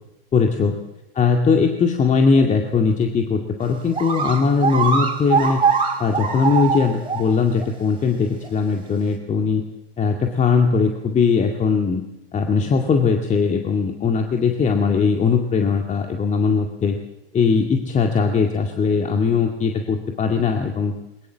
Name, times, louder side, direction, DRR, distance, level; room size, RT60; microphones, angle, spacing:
voice 1, 0.3-0.8 1.1-5.6 6.0-9.6 10.0-12.0 12.3-17.0 17.3-20.9, left 5 dB, 25° left, 4 dB, 2.2 m, -20 dB
sound 1, 3.6-3.7 3.9-7.2 7.6-7.7 8.4-8.5, right 5 dB, 15° right, 5.6 m, -22 dB
21.5 x 20.5 x 7.4 m, 0.89 s
hypercardioid pair, 100°, 30 cm